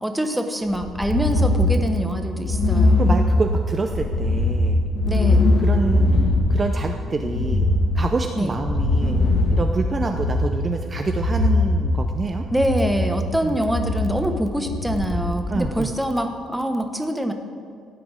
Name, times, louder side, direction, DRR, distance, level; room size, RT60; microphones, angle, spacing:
voice 1, 0.0-3.2 5.1-5.5 8.4-8.5 12.5-17.3, equal, 5° right, 5 dB, 1.0 m, -24 dB
sound 1, 0.7-15.7, left 2 dB, 45° left, 1.7 m, -21 dB
voice 2, 3.0-4.8 5.6-9.2 9.5-12.4 13.4-13.6 15.5-15.9, right 4 dB, 20° right, 4 dB, 0.6 m, -27 dB
15.5 x 6.0 x 8.8 m, 2.3 s
cardioid pair, 165°, 0 cm